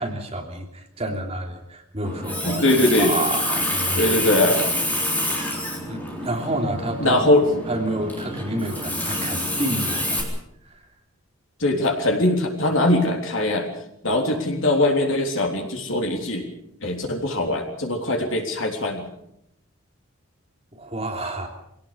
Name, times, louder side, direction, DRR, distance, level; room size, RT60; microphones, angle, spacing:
voice 1, 0.0-2.6 3.0-4.1 5.9-7.2 7.7-10.3 20.7-21.5, right 1 dB, 30° right, 1 dB, 3.2 m, -29 dB
Water tap faucet, 2.0-10.2, left 1 dB, 5° left, 4.0 m, -27 dB
voice 2, 2.4-3.2 4.0-4.7 7.0-7.5 11.6-13.7 14.0-16.5 16.8-19.1, left 1 dB, 60° left, 2 dB, 3.6 m, -21 dB
23.5 x 17.5 x 6.9 m, 0.76 s
head